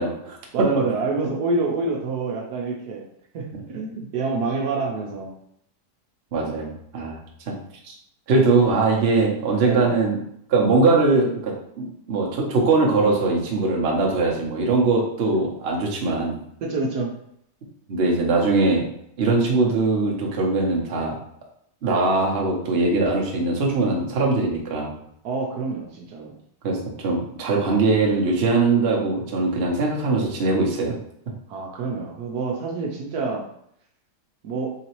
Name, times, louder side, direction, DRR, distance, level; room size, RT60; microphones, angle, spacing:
voice 1, 0.0-0.7 6.3-7.2 7.5-7.6 7.8-7.9 8.3-10.2 10.5-16.3 17.9-18.9 19.2-21.1 21.8-24.9 26.6-31.0, right 3 dB, 45° right, -2 dB, 0.9 m, -21 dB
voice 2, 0.5-3.0 3.3-5.3 9.6-10.0 16.6-17.1 25.2-26.3 31.5-33.4 34.4-34.7, right 3 dB, 70° right, -1 dB, 1.1 m, -27 dB
4.0 x 3.8 x 2.9 m, 0.72 s
omnidirectional pair, 1.8 m